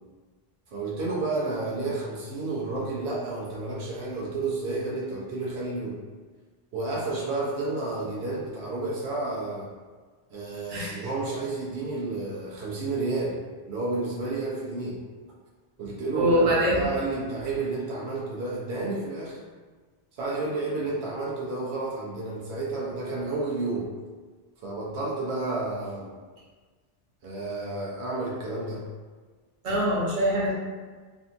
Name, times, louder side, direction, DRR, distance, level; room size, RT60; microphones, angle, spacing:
voice 1, 0.7-6.0 6.7-9.7 10.3-13.4 13.7-15.0 15.8-19.4 20.2-23.9 24.6-26.1 27.2-28.8, right 2 dB, 85° right, -5 dB, 0.9 m, -31 dB
voice 2, 16.1-16.8 29.6-30.5, equal, 55° right, -8 dB, 1.0 m, -23 dB
2.7 x 2.6 x 2.4 m, 1.4 s
omnidirectional pair, 1.1 m